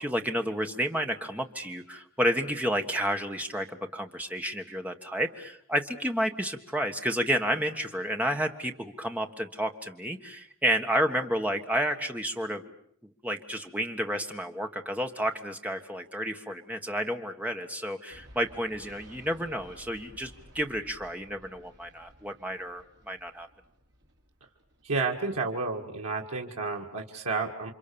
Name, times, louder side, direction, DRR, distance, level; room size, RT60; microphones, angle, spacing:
voice 1, 0.0-12.6 13.2-23.5, equal, 5° right, 5 dB, 1.5 m, -31 dB
sound 1, 18.1-25.1, equal, 55° right, 3.8 m, -55 dB
voice 2, 24.8-27.7, right 3 dB, 90° right, 1 dB, 2.0 m, -31 dB
29.5 x 25.5 x 7.0 m, 0.67 s
head